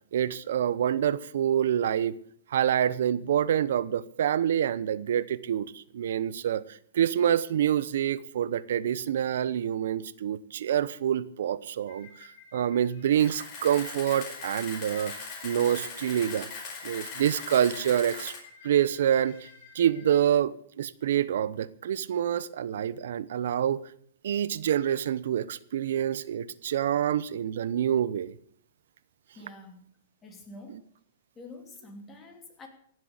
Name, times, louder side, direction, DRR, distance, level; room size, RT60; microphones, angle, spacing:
voice 1, 0.1-2.2 2.5-15.1 15.4-16.5 16.8-18.3 18.6-19.5 19.7-23.9 24.2-28.3, right 10 dB, 70° right, 18 dB, 0.8 m, -27 dB
sound 1, 11.9-20.2, left 5 dB, 55° left, 3.9 m, -53 dB
Camera, 13.2-18.4, left 4 dB, 30° left, 5.1 m, -40 dB
voice 2, 29.3-29.8 30.2-30.9 31.3-32.7, left 2 dB, 15° left, 3 dB, 2.9 m, -47 dB
16.5 x 7.7 x 8.0 m, 0.62 s
hypercardioid pair, 145°, 0 cm